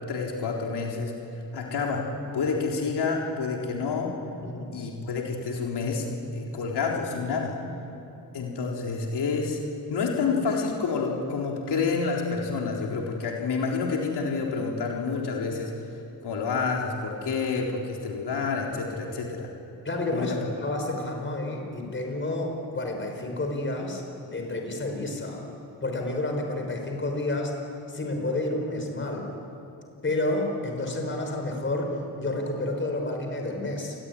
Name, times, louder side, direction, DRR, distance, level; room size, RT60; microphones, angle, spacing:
voice 1, 0.1-1.1 1.5-2.1 2.3-4.1 4.7-6.0 6.3-7.6 8.3-9.6 9.9-15.7 16.2-19.5 20.1-20.4, left 4 dB, 85° left, -1 dB, 4.0 m, -28 dB
voice 2, 4.4-4.7 19.8-25.4 25.8-27.5 27.9-29.3 30.0-34.0, left 2 dB, 30° left, 3 dB, 5.4 m, -30 dB
28.5 x 21.0 x 9.9 m, 3.0 s
wide cardioid pair, 125°, 39 cm